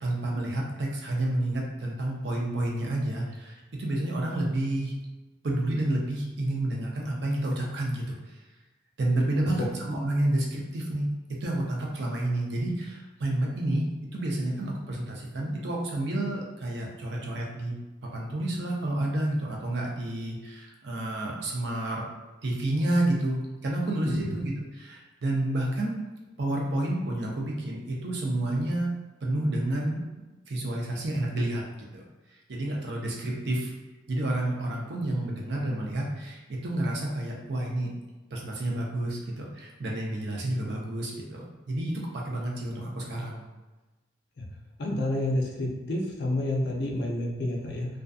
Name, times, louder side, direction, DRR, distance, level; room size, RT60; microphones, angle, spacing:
voice 1, 0.0-4.9 5.4-8.4 9.0-11.1 11.4-17.7 18.1-22.0 22.4-26.0 26.4-28.9 29.2-30.1 30.5-31.6 31.9-32.1 32.5-33.7 34.1-37.9 38.3-43.4, right 1 dB, 60° right, -2 dB, 0.5 m, -30 dB
voice 2, 44.8-47.9, left 1 dB, 55° left, -1 dB, 0.5 m, -29 dB
2.5 x 2.5 x 2.3 m, 1.1 s
head